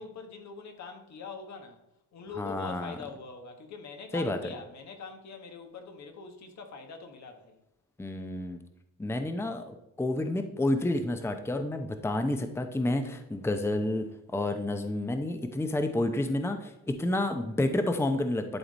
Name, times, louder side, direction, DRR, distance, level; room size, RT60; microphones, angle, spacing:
voice 1, 0.0-1.8 2.1-7.6, left 4 dB, 65° left, 1.4 m, -43 dB
voice 2, 2.4-3.0 4.1-4.4 8.0-8.6 9.0-18.6, left 1 dB, 10° left, 0.7 m, -30 dB
11.0 x 3.9 x 4.1 m
cardioid pair, 90°, 30 cm